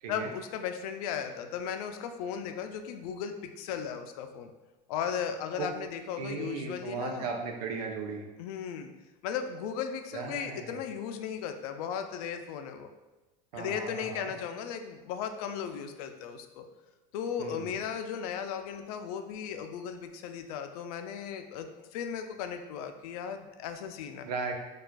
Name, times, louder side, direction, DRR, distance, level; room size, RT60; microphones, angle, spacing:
voice 1, 0.1-4.5 4.9-7.3 8.4-8.9 9.2-12.9 13.5-16.7 17.1-24.3, left 8 dB, 75° left, 7 dB, 0.4 m, -36 dB
voice 2, 6.2-8.3 10.1-10.8 13.5-14.3 17.4-17.8 24.2-24.5, right 5 dB, 80° right, 2 dB, 0.6 m, -36 dB
4.5 x 2.4 x 2.3 m, 1.1 s
supercardioid pair, 130°, 19 cm